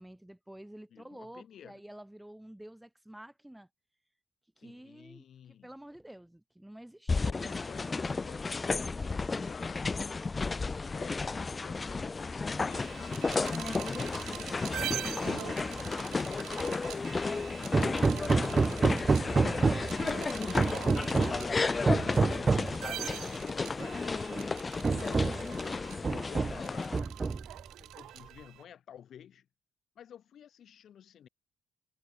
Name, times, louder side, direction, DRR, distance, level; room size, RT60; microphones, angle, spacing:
voice 1, 0.0-3.7 4.6-7.6, right 1 dB, 5° right, 2.0 m, -50 dB
voice 2, 0.9-1.8 4.6-5.7 7.2-10.2 10.8-13.9 16.1-17.1 17.6-19.6 21.9-24.4 25.6-27.4 27.8-29.5 30.0-31.3, left 9 dB, 65° left, 5.7 m, -52 dB
sound 1, 7.1-27.0, left 4 dB, 30° left, 1.0 m, -33 dB
sound 2, 12.7-28.6, right 14 dB, 85° right, 0.5 m, -44 dB
Hammer, 17.7-20.0 20.6-21.4 21.9-22.8 23.8-23.9 24.3-24.4 24.8-25.5 26.0-26.7 26.9-27.6, right 4 dB, 30° right, 0.4 m, -27 dB
cardioid pair, 90°, 0 cm